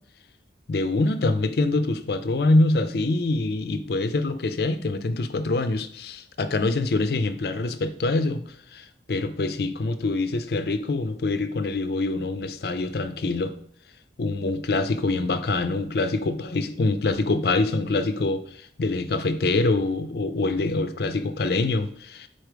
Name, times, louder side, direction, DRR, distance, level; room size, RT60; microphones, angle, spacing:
voice 1, 0.7-8.4 8.7-13.6 14.2-22.3, left 2 dB, 60° left, 10 dB, 0.5 m, -25 dB
4.6 x 4.3 x 4.9 m, 0.63 s
head